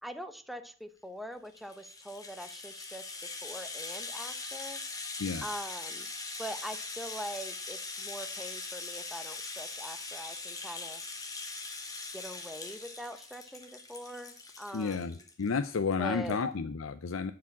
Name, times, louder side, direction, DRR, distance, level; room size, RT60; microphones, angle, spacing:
voice 1, 0.0-3.0 3.4-4.8 5.4-6.1 6.4-11.0 12.1-15.2 16.0-16.4, equal, ahead, 9 dB, 0.8 m, -43 dB
Rattle (instrument), 1.4-15.6 15.9-16.0 16.3-16.4, left 3 dB, 20° left, 1.4 m, -41 dB
voice 2, 14.7-17.3, left 5 dB, 80° left, 10 dB, 0.6 m, -32 dB
11.0 x 4.9 x 7.2 m, 0.44 s
head